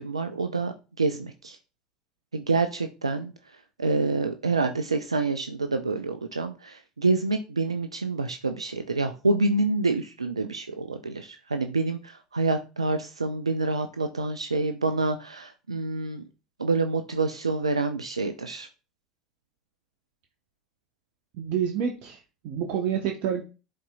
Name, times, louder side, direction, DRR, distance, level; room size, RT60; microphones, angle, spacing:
voice 1, 0.0-1.6 2.3-3.3 3.8-16.2 16.6-18.7, right 3 dB, 85° right, 8 dB, 0.4 m, -27 dB
voice 2, 21.3-23.4, right 8 dB, 55° right, 3 dB, 0.9 m, -28 dB
11.0 x 4.2 x 2.3 m, 0.32 s
figure-of-eight pair, 65°, 3 cm